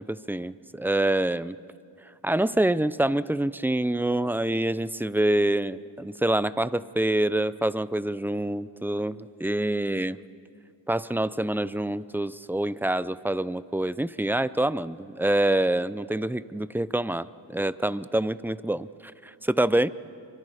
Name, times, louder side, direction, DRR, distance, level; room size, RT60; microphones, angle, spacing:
voice 1, 0.1-1.6 2.2-10.2 10.9-19.9, right 1 dB, 5° right, 17 dB, 0.5 m, -26 dB
27.5 x 24.5 x 5.0 m, 2.4 s
cardioid pair, 55°, 44 cm